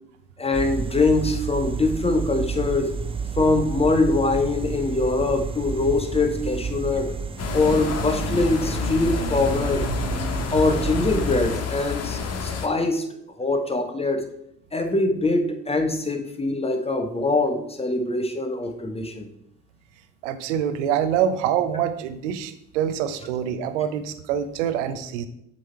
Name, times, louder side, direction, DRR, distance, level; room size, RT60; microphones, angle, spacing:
voice 1, 0.4-3.0 3.4-7.2 7.5-9.9 10.5-13.1 13.4-14.3 14.7-19.3, left 3 dB, 15° left, 5 dB, 1.0 m, -23 dB
sound 1, 0.5-11.6, right 6 dB, 15° right, 0.4 m, -30 dB
sound 2, 7.4-12.7, left 6 dB, 45° left, 0.9 m, -29 dB
voice 2, 20.2-25.3, right 9 dB, 75° right, 10 dB, 0.6 m, -25 dB
7.7 x 3.1 x 4.4 m, 0.74 s
figure-of-eight pair, 45°, 36 cm